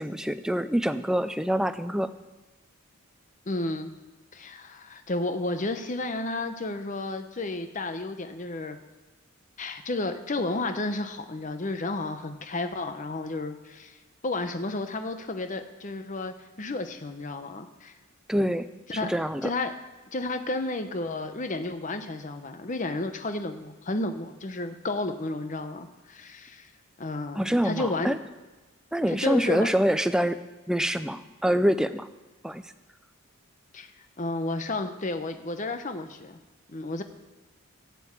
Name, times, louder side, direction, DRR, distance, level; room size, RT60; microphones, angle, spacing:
voice 1, 0.0-2.1 18.3-18.7 19.0-19.5 27.3-28.2 28.9-30.4 30.7-32.1 32.4-32.7, equal, 5° right, 10 dB, 0.3 m, -25 dB
voice 2, 3.5-3.9 4.3-8.8 9.6-14.0 14.2-18.0 18.9-19.1 19.4-19.7 20.1-26.7 27.0-28.2 29.1-29.7 33.7-33.9 34.2-36.4 36.7-37.0, left 2 dB, 35° left, 8 dB, 0.8 m, -32 dB
12.0 x 7.0 x 8.3 m, 1.2 s
head